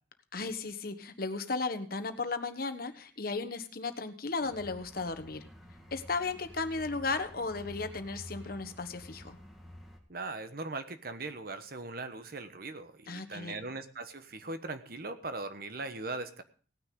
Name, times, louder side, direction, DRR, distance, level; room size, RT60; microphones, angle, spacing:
voice 1, 0.3-5.5 5.9-9.4 13.1-13.6, left 3 dB, 55° left, 9 dB, 1.2 m, -35 dB
sound 1, 4.4-10.0, equal, ahead, 1.9 m, -50 dB
voice 2, 10.1-16.4, right 3 dB, 55° right, 9 dB, 1.2 m, -40 dB
18.0 x 9.7 x 3.8 m, 0.42 s
head